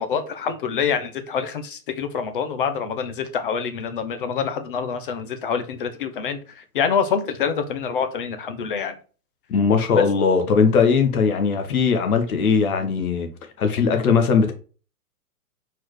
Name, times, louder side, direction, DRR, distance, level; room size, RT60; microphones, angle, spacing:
voice 1, 0.0-8.9 10.0-10.1, left 6 dB, 35° left, 0.7 m, -26 dB
voice 2, 9.5-13.3 13.6-14.5, left 5 dB, 65° left, 1.5 m, -19 dB
4.6 x 4.3 x 4.8 m
hypercardioid pair, 170°, 46 cm